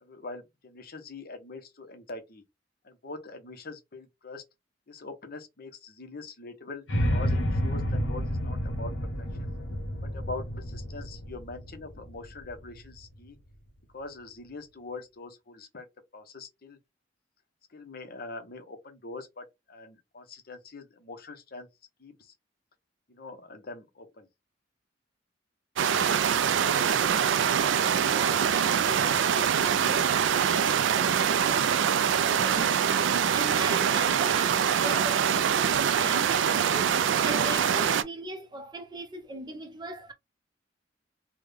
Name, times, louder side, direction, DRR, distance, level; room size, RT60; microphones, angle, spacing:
voice 1, 0.0-2.4 2.8-4.4 4.9-6.8 7.1-8.9 9.2-9.5 10.1-13.4 13.9-15.8 16.1-16.8 17.7-21.7 22.0-22.3 23.1-24.3, left 3 dB, 55° left, 0.8 m, -43 dB
sound 1, 6.9-13.0, equal, 80° left, 0.8 m, -30 dB
sound 2, 25.8-38.0, right 8 dB, 80° right, 0.3 m, -24 dB
voice 2, 28.0-33.0 33.3-40.1, right 1 dB, 25° right, 0.5 m, -39 dB
3.5 x 2.2 x 3.3 m
head